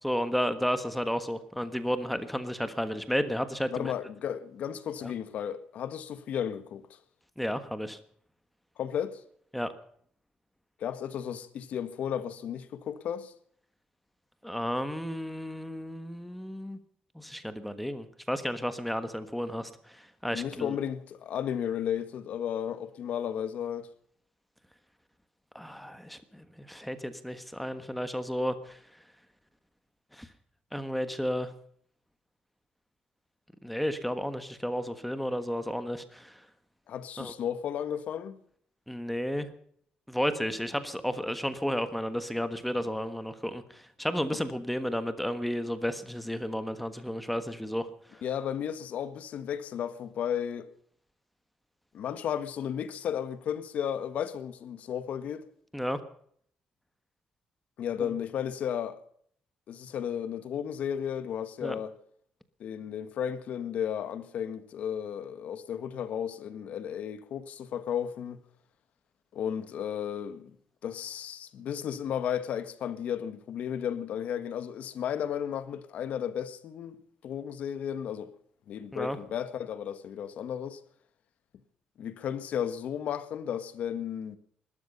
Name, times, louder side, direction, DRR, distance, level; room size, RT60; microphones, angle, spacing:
voice 1, 0.0-3.9 5.0-5.1 7.4-8.0 9.5-9.7 14.4-16.8 17.1-20.8 25.5-28.8 30.1-30.3 30.7-31.5 33.6-36.4 37.2-37.3 38.9-39.5 40.1-48.2 55.7-56.0 58.0-58.1 61.6-61.8 78.9-79.2, equal, ahead, 1.4 m, -32 dB
voice 2, 3.7-7.0 8.8-9.2 10.8-13.3 20.3-23.9 36.9-38.4 44.3-44.4 48.2-50.7 51.9-55.5 57.8-59.0 59.7-61.9 62.6-68.4 69.3-70.5 70.8-78.3 78.7-80.8 82.0-84.4, left 9 dB, 60° left, 1.6 m, -34 dB
20.0 x 13.0 x 5.5 m
cardioid pair, 135°, 3 cm